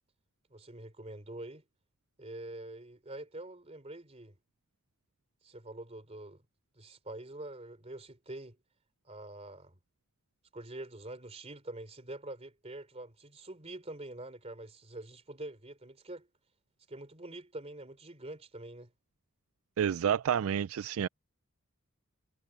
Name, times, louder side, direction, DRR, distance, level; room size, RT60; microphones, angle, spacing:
voice 1, 0.5-1.6 2.2-4.4 5.4-6.4 6.7-8.6 9.0-9.8 10.5-16.3 16.9-18.9, right 2 dB, 30° right, 3.2 m, -45 dB
voice 2, 19.8-21.1, right 8 dB, 75° right, 0.4 m, -29 dB
head